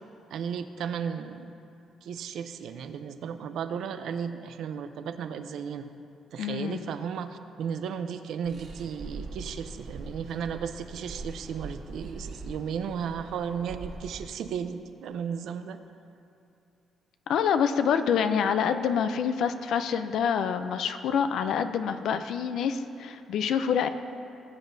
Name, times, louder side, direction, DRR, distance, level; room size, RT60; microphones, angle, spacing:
voice 1, 0.3-1.5 2.0-5.9 6.3-15.8, right 7 dB, 75° right, 9 dB, 0.5 m, -34 dB
voice 2, 6.4-6.8 17.3-23.9, left 7 dB, 75° left, 9 dB, 0.4 m, -26 dB
sound 1, 8.4-14.2, right 3 dB, 55° right, 1.7 m, -42 dB
18.0 x 8.1 x 2.7 m, 2.6 s
cardioid pair, 90°, 0 cm